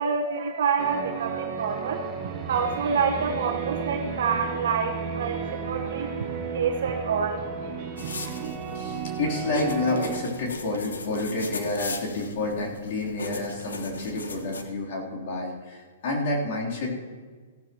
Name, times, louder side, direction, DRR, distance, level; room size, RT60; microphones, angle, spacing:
voice 1, 0.0-2.0 2.5-6.1 6.5-7.4 8.1-8.3, right 6 dB, 70° right, 1 dB, 1.2 m, -27 dB
sound 1, 0.8-10.2, right 6 dB, 45° right, 2.4 m, -33 dB
sound 2, 1.6-8.5, right 2 dB, 10° right, 2.0 m, -46 dB
sound 3, 8.0-14.6, left 3 dB, 90° left, 1.3 m, -38 dB
voice 2, 8.7-16.9, left 2 dB, 55° left, -3 dB, 3.4 m, -29 dB
16.0 x 12.0 x 3.0 m, 1.5 s
hypercardioid pair, 135°, 0 cm